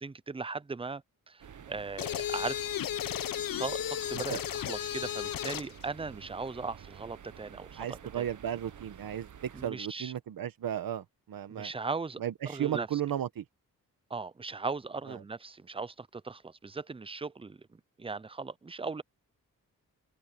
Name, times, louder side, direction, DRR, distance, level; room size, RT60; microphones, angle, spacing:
voice 1, 0.0-2.6 3.6-4.4 4.7-8.3 9.5-10.1 11.5-12.2 12.5-12.9 14.1-19.0, right 4 dB, 15° right, 0.6 m, -38 dB
sound 1, 1.4-9.7, right 8 dB, 60° right, 1.3 m, -50 dB
sound 2, 2.0-5.7, left 11 dB, 75° left, 0.8 m, -34 dB
voice 2, 7.8-11.7 12.2-13.4 15.1-15.2, right 10 dB, 75° right, 1.4 m, -35 dB
cardioid pair, 85°, 34 cm